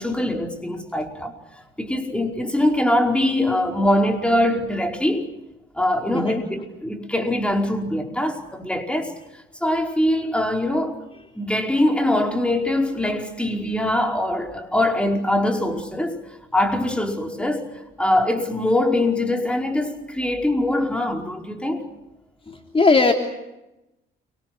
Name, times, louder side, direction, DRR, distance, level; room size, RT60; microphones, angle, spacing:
voice 1, 0.0-1.4 1.8-5.3 5.8-9.1 9.6-11.0 11.3-16.2 16.5-17.7 18.0-21.9, left 1 dB, 5° left, 5.0 m, -22 dB
voice 2, 22.5-23.1, left 3 dB, 30° left, 3.3 m, -18 dB
30.0 x 25.0 x 6.3 m
cardioid pair, 90°, 20 cm